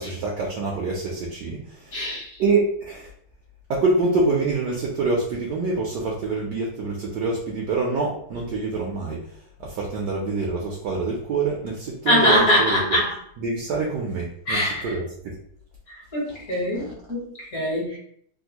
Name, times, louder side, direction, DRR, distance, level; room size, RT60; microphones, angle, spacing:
voice 1, 0.0-3.1 3.7-9.3 9.6-13.0 13.4-15.4 16.3-16.9, right 3 dB, 75° right, -2 dB, 1.0 m, -26 dB
voice 2, 1.9-2.3 12.1-13.1 14.5-14.9 16.1-18.0, equal, 50° left, -4 dB, 1.2 m, -22 dB
3.5 x 2.4 x 2.8 m, 0.64 s
omnidirectional pair, 2.4 m